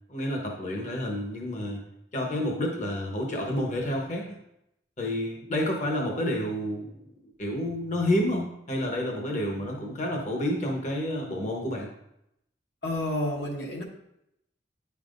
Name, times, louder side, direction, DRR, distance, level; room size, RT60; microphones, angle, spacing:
voice 1, 0.1-1.8 2.1-4.4 5.0-7.0 7.4-11.9, left 1 dB, 40° left, 0 dB, 1.0 m, -29 dB
voice 2, 12.8-13.8, left 1 dB, 60° left, 0 dB, 1.1 m, -30 dB
9.3 x 5.7 x 2.6 m, 0.80 s
head